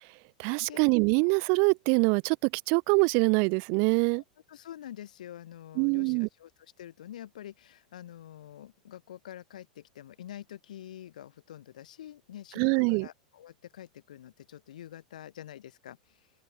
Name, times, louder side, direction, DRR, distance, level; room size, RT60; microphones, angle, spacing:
voice 1, 0.4-4.2 5.8-6.3 12.6-13.1, right 39 dB, 55° right, 0.6 m, -24 dB
voice 2, 4.1-16.3, left 11 dB, 75° left, 2.2 m, -47 dB
open air
hypercardioid pair, 100°, 4 cm